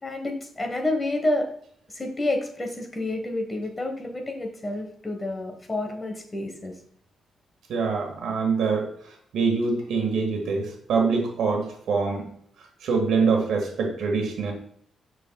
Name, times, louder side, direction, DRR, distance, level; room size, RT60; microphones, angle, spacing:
voice 1, 0.0-1.5 1.9-6.7, left 2 dB, 20° left, 3 dB, 1.2 m, -29 dB
voice 2, 7.7-8.9 9.3-12.3 12.8-14.5, right 4 dB, 75° right, 3 dB, 1.6 m, -24 dB
6.6 x 6.3 x 2.3 m, 0.65 s
cardioid pair, 150°, 0 cm